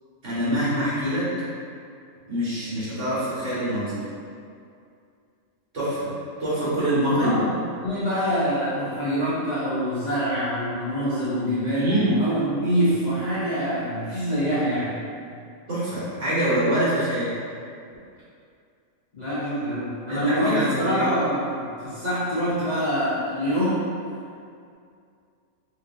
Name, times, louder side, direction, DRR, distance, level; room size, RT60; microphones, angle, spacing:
voice 1, 0.2-1.2 2.3-4.0 5.7-6.1 6.4-7.3 11.7-12.1 15.7-17.3 20.1-21.0, right 1 dB, 55° right, -11 dB, 1.8 m, -24 dB
voice 2, 7.2-15.0 19.1-23.8, equal, 35° left, -12 dB, 0.8 m, -25 dB
4.9 x 2.9 x 2.5 m, 2.4 s
omnidirectional pair, 1.5 m